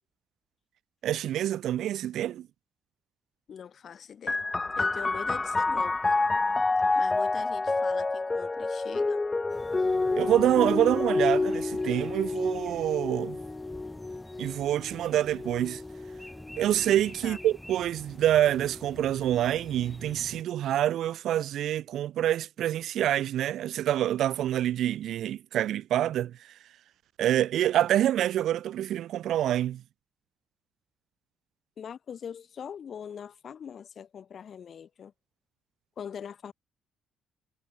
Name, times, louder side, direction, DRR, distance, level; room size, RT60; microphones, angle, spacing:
voice 1, 1.0-2.5 10.2-13.4 14.4-15.8 16.6-26.5 27.2-29.8, right 12 dB, 75° right, 0.4 m, -26 dB
voice 2, 3.5-4.4 4.7-6.1 6.9-9.3 17.2-17.4 31.8-35.1 36.0-36.5, left 7 dB, 55° left, 3.3 m, -42 dB
sound 1, 4.3-17.5 18.4-19.1, left 3 dB, 20° left, 0.4 m, -29 dB
sound 2, 9.5-20.4, equal, 5° left, 3.0 m, -48 dB
cardioid pair, 90°, 0 cm